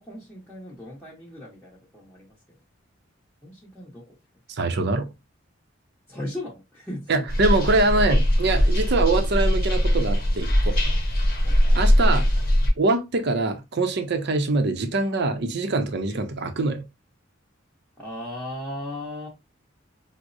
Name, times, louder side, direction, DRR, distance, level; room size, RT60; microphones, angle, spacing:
voice 1, 0.0-2.6 3.4-4.2 4.5-4.6 6.1-7.3 11.4-12.2 18.0-19.3, left 1 dB, 5° left, 0.9 m, -37 dB
voice 2, 4.5-5.1 7.1-10.8 11.7-12.2 12.8-16.8, right 3 dB, 55° right, 0.6 m, -24 dB
sound 1, 7.3-12.7, equal, 50° left, 1.0 m, -21 dB
4.7 x 2.0 x 2.5 m
head